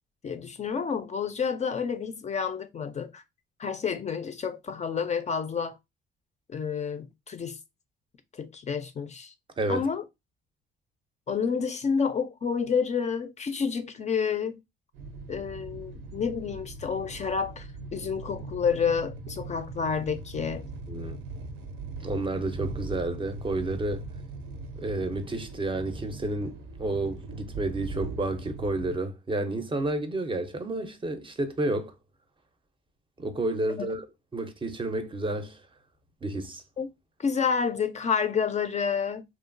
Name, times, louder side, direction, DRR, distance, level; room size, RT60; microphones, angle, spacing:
voice 1, 0.2-3.2 3.6-5.8 6.5-7.6 8.3-9.3 9.7-10.0 11.3-14.6 15.3-20.6 33.8-33.9 36.8-36.9 37.2-39.2, left 6 dB, 35° left, 0.4 m, -29 dB
voice 2, 9.6-9.9 20.9-21.2 22.0-24.0 24.8-31.9 33.2-34.1 34.3-35.6 36.2-36.6, right 2 dB, 25° right, 0.5 m, -30 dB
sound 1, 14.9-29.0, right 3 dB, 80° right, 0.5 m, -40 dB
2.9 x 2.3 x 2.5 m
cardioid pair, 90°, 20 cm